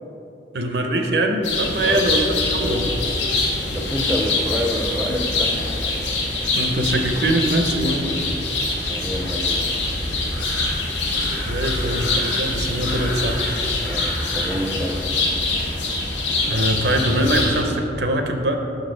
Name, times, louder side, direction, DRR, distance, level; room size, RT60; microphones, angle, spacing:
voice 1, 0.5-2.9 6.6-8.1 11.5-13.4 16.4-18.6, right 1 dB, 70° right, 4 dB, 0.6 m, -22 dB
sound 1, 1.4-17.6, left 2 dB, 90° left, 1.0 m, -24 dB
voice 2, 1.8-2.2 2.5-3.0 3.6-5.6 8.9-9.8 13.8-15.0, equal, 5° right, 1 dB, 0.4 m, -28 dB
6.2 x 3.9 x 5.1 m, 3.0 s
head